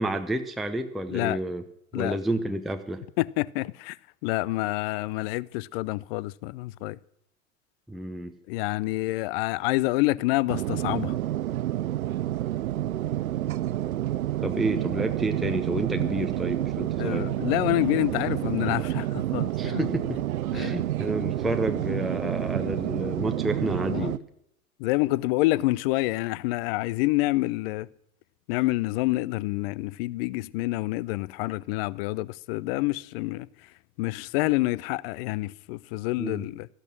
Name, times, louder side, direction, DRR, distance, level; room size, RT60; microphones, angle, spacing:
voice 1, 0.0-1.6 1.9-3.0 7.9-8.3 14.4-17.3 19.6-20.2 20.5-24.2 36.2-36.5, right 1 dB, ahead, 0.7 m, -30 dB
voice 2, 3.2-4.0 4.2-7.0 8.5-11.2 17.0-19.9 20.5-20.8 23.9-24.2 24.8-27.9 28.5-33.5 34.0-36.7, left 20 dB, 45° left, 0.5 m, -27 dB
sound 1, 10.5-24.2, right 13 dB, 70° right, 0.7 m, -29 dB
14.0 x 12.0 x 6.2 m
figure-of-eight pair, 85°, 43 cm